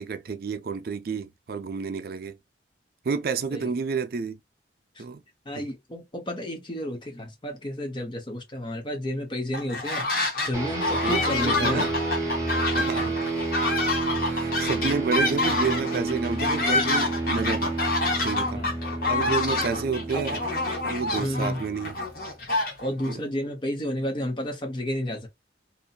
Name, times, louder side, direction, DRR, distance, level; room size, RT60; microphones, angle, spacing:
voice 1, 0.0-2.3 3.1-4.4 5.0-5.2 11.0-11.9 12.7-13.1 14.3-17.7 18.2-18.6 19.1-20.4 20.8-21.9 23.1-23.2, right 5 dB, 55° right, 0.4 m, -30 dB
voice 2, 5.5-10.1 10.5-11.9 18.5-18.7 19.2-19.4 20.1-20.3 21.2-21.6 22.8-25.3, equal, 25° left, 0.8 m, -31 dB
sound 1, 9.5-10.5 10.8-23.1, left 2 dB, 55° left, 1.0 m, -27 dB
sound 2, 10.5-22.2, right 2 dB, 15° right, 0.9 m, -30 dB
2.7 x 2.2 x 2.3 m
head